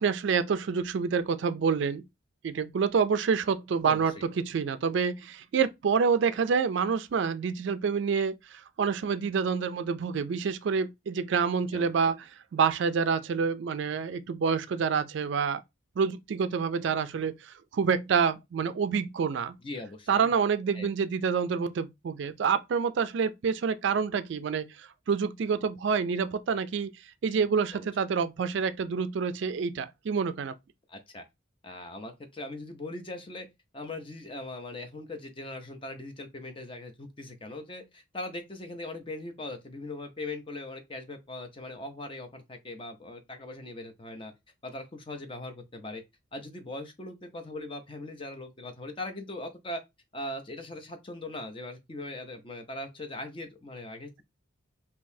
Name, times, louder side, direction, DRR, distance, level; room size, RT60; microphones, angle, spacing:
voice 1, 0.0-2.0 2.4-12.2 12.5-15.6 16.0-19.6 20.1-26.9 27.2-30.5, right 6 dB, 65° right, 0.3 m, -27 dB
voice 2, 3.8-4.3 11.7-12.1 19.6-20.3 20.7-20.9 27.7-27.9 30.9-31.2 31.6-33.5 33.7-44.3 44.6-46.0 46.3-49.8 50.1-54.2, left 2 dB, 25° left, 0.5 m, -40 dB
3.7 x 2.7 x 2.6 m
head